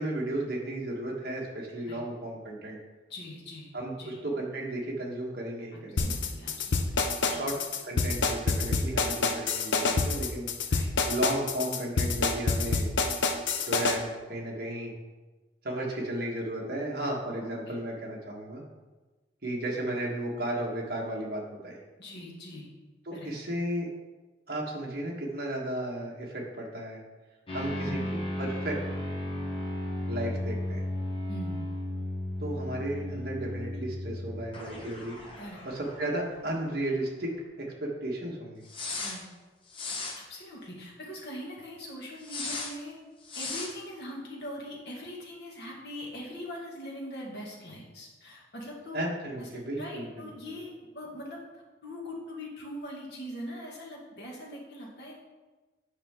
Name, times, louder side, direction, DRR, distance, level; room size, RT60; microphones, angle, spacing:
voice 1, 0.0-2.8 3.7-6.1 7.3-7.6 7.8-10.5 11.1-12.9 13.6-14.9 15.6-18.6 19.4-21.8 23.1-23.9 24.5-27.0 27.5-28.0 28.4-28.8 30.1-30.8 32.4-35.2 35.6-38.6 48.9-50.3, right 1 dB, 50° right, -2 dB, 1.5 m, -34 dB
voice 2, 3.1-3.7 4.0-4.2 5.7-7.0 7.3-7.5 10.7-10.9 17.4-17.8 22.0-22.7 23.1-23.3 27.9-28.0 31.3-31.7 35.4-35.6 39.0-39.2 40.1-43.0 43.4-49.0 49.4-50.7 50.9-51.4 51.8-55.2, left 1 dB, 60° left, -3 dB, 1.9 m, -42 dB
sound 1, 6.0-14.0, left 4 dB, 75° left, 0.7 m, -27 dB
sound 2, 27.5-36.6 36.9-37.0 38.7-39.2 39.7-40.2 42.2-42.7 43.2-43.7, left 1 dB, 25° left, 1.1 m, -35 dB
8.7 x 5.5 x 3.7 m, 1.2 s
head